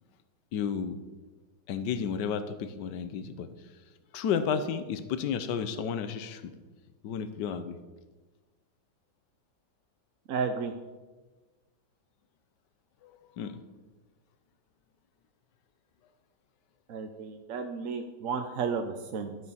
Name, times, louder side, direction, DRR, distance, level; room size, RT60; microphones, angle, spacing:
voice 1, 0.5-1.0 1.7-3.5 4.1-6.5 7.0-7.8 13.0-13.6, left 7 dB, 75° left, 11 dB, 1.5 m, -32 dB
voice 2, 10.3-10.7 16.9-19.4, right 5 dB, 60° right, 6 dB, 1.0 m, -33 dB
12.0 x 9.4 x 5.5 m, 1.2 s
omnidirectional pair, 1.9 m